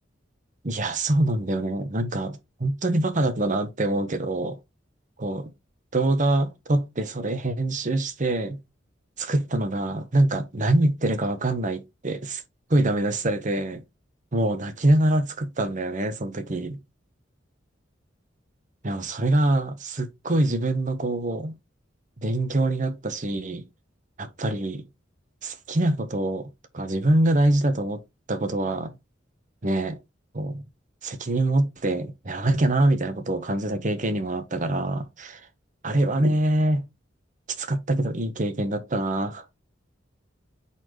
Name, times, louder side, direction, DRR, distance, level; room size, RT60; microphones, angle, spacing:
voice 1, 0.6-4.6 5.2-5.5 5.9-8.6 9.2-12.4 12.7-13.8 14.3-16.8 18.8-21.5 22.2-23.6 24.2-24.9 25.4-28.0 28.3-29.0 29.6-30.0 30.3-30.7 31.0-35.5 35.8-36.9 37.6-39.4, right 1 dB, 40° right, 1.0 m, -24 dB
4.7 x 4.2 x 5.1 m
head